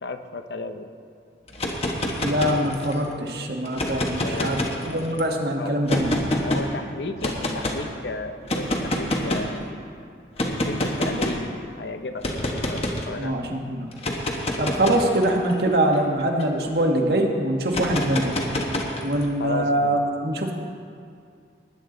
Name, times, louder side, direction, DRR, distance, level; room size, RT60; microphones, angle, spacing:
voice 1, 0.0-0.9 4.1-4.8 5.6-5.8 6.4-9.8 10.5-11.4 11.8-13.4 19.4-20.0, left 3 dB, 80° left, 8 dB, 0.8 m, -34 dB
sound 1, 1.5-3.0 3.7-5.2 5.9-6.6 7.2-7.8 8.5-9.6 10.4-11.5 12.2-13.1 13.9-16.7 17.7-19.3, left 1 dB, 35° left, 1.2 m, -27 dB
voice 2, 2.2-6.2 13.2-13.9 14.6-18.4 19.0-20.5, right 1 dB, 65° right, 2 dB, 1.4 m, -23 dB
20.0 x 10.0 x 3.9 m, 2.3 s
head